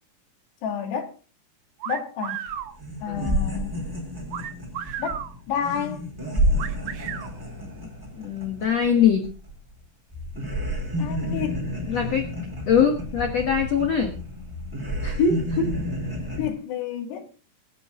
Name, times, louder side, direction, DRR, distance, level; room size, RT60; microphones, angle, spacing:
voice 1, 0.6-1.1 1.9-2.5 3.0-3.9 5.0-5.2 5.5-6.0 11.0-11.7 16.3-17.3, left 8 dB, 80° left, 4.3 m, -30 dB
sound 1, 1.8-2.7 4.3-5.3 6.6-7.3, right 10 dB, 60° right, 2.1 m, -33 dB
sound 2, 2.5-2.6 2.8-9.8 10.1-16.5, equal, 5° right, 3.6 m, -30 dB
voice 2, 8.2-9.3 11.9-12.3 12.7-14.1 15.0-15.7, left 7 dB, 55° left, 1.9 m, -22 dB
23.0 x 9.5 x 3.7 m
omnidirectional pair, 4.8 m